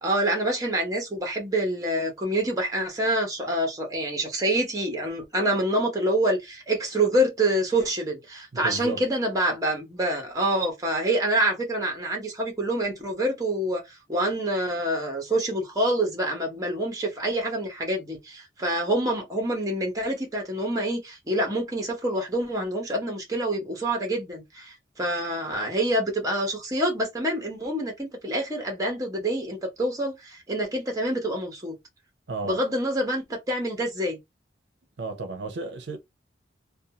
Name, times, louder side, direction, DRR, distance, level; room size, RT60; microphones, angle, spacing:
voice 1, 0.0-31.7 32.4-34.2, right 1 dB, 20° right, 0.8 m, -26 dB
voice 2, 8.5-9.1 32.3-32.6 35.0-36.0, right 4 dB, 70° right, 0.5 m, -33 dB
2.6 x 2.2 x 2.7 m
head